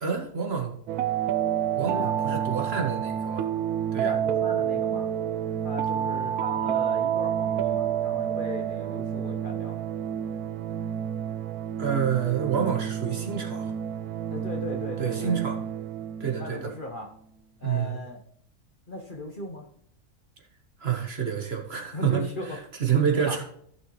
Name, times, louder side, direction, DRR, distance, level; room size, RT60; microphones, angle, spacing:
voice 1, 0.0-0.7 1.8-3.5 3.9-4.1 11.8-13.7 15.0-15.6 16.2-16.7 17.6-18.0 20.8-23.4, right 7 dB, 45° right, 2 dB, 1.4 m, -28 dB
sound 1, 0.9-16.6, right 9 dB, 80° right, 1.1 m, -29 dB
voice 2, 4.0-5.1 5.6-9.8 14.3-15.4 16.3-17.1 17.6-18.2 18.9-19.7 21.9-22.6 23.1-23.4, left 1 dB, 40° left, 2 dB, 1.0 m, -37 dB
14.5 x 6.3 x 3.1 m, 0.66 s
omnidirectional pair, 1.6 m